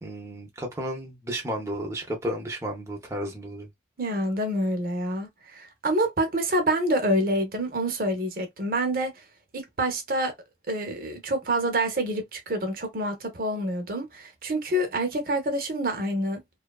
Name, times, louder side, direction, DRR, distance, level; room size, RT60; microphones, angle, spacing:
voice 1, 0.0-3.7, right 1 dB, 15° right, 0.6 m, -33 dB
voice 2, 4.0-9.1 9.5-10.3 10.7-16.4, right 1 dB, 50° right, 0.7 m, -27 dB
2.7 x 2.4 x 2.2 m
head